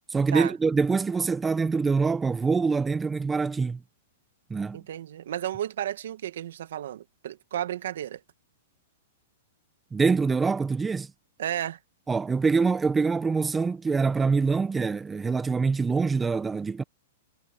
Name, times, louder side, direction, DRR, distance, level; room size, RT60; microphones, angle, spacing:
voice 1, 0.1-3.8 4.5-4.8 9.9-11.1 12.1-16.8, right 4 dB, 10° right, 0.9 m, -25 dB
voice 2, 4.7-8.2 11.4-11.8, right 11 dB, 70° right, 1.9 m, -33 dB
hypercardioid pair, 130°, 0 cm